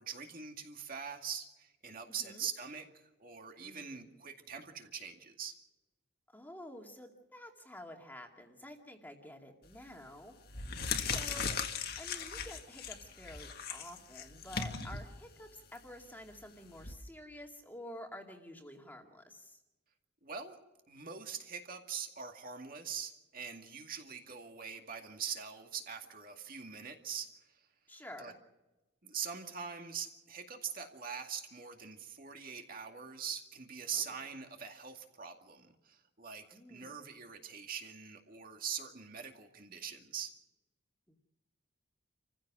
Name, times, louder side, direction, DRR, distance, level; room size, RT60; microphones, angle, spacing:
voice 1, 0.0-2.9 3.2-5.5 20.2-20.6 20.9-27.3 28.2-28.3 29.0-40.3, right 7 dB, 45° right, 4 dB, 2.2 m, -43 dB
voice 2, 3.6-4.1 6.3-10.3 11.0-11.6 12.0-19.6 27.9-28.3 33.9-34.0 36.5-37.0 41.1-41.2, left 1 dB, 10° left, 2 dB, 2.3 m, -50 dB
sound 1, 9.7-10.0 10.4-16.9, left 5 dB, 50° left, 1.8 m, -39 dB
28.5 x 15.5 x 6.2 m, 1.1 s
head